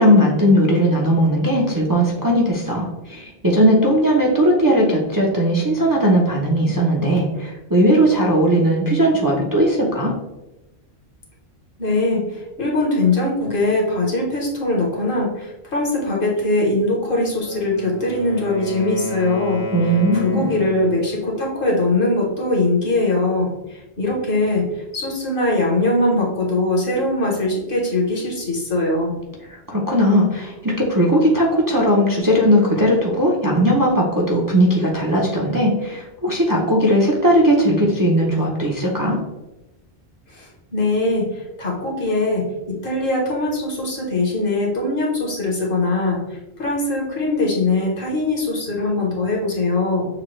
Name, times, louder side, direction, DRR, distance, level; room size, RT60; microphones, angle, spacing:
voice 1, 0.0-10.1 19.7-20.5 29.7-39.2, equal, 25° right, -2 dB, 0.6 m, -18 dB
voice 2, 11.8-19.6 20.1-23.5 24.0-24.7 24.9-29.1 40.3-40.4 40.7-46.2 46.6-50.1, left 2 dB, 55° left, -2 dB, 1.3 m, -21 dB
Wind instrument woodwind instrument, 17.3-21.1, left 3 dB, 75° left, 1.4 m, -33 dB
6.5 x 2.2 x 3.1 m, 0.97 s
omnidirectional pair, 1.1 m